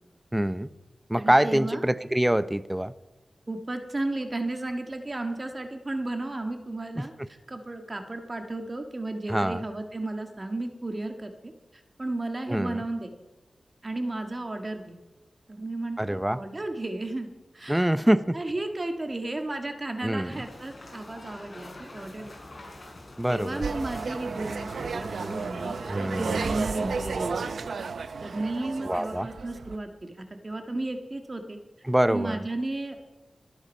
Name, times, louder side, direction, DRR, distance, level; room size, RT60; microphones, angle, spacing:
voice 1, 0.3-0.7 1.1-2.9 7.0-7.3 9.3-9.6 12.5-12.8 16.0-16.4 17.7-18.4 20.0-20.4 23.2-23.6 25.9-26.5 28.8-29.3 31.8-32.4, right 1 dB, 10° right, 15 dB, 0.7 m, -25 dB
voice 2, 1.2-1.8 3.5-7.1 7.5-11.3 12.0-13.1 13.8-15.0 15.5-17.3 17.6-17.9 18.3-22.3 23.3-25.8 26.1-27.4 28.2-30.1 30.4-31.6 32.1-33.0, right 2 dB, 35° right, 5 dB, 1.7 m, -33 dB
sound 1, 20.3-27.2, left 2 dB, 50° left, 4.6 m, -46 dB
sound 2, 23.6-29.8, right 5 dB, 90° right, 0.7 m, -33 dB
22.5 x 8.0 x 5.5 m, 1.1 s
cardioid pair, 55°, 0 cm